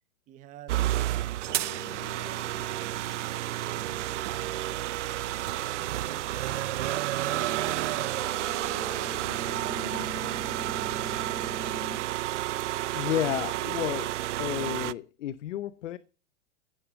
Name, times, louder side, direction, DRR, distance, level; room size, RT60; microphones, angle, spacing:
voice 1, 0.3-4.0 4.6-5.0 5.7-8.5, right 12 dB, 20° right, 1.0 m, -50 dB
sound 1, 0.7-14.9, right 15 dB, 75° right, 0.6 m, -31 dB
sound 2, 1.5-12.0, left 5 dB, 70° left, 2.4 m, -45 dB
voice 2, 12.9-16.0, left 11 dB, 85° left, 0.8 m, -32 dB
16.0 x 6.3 x 8.1 m
supercardioid pair, 165°, 36 cm